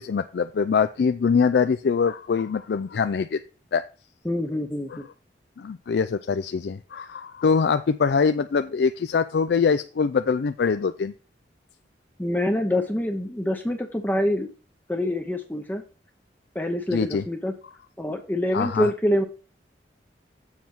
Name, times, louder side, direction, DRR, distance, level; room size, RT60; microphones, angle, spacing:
voice 1, 0.0-3.4 3.7-3.8 4.9-5.0 5.6-11.1 16.9-17.2 18.5-18.9, left 5 dB, 65° left, 10 dB, 0.4 m, -23 dB
voice 2, 4.2-5.0 12.2-14.5 14.9-15.8 16.5-17.5 18.0-19.2, left 1 dB, 10° left, 4 dB, 0.6 m, -25 dB
7.4 x 4.6 x 5.8 m, 0.35 s
head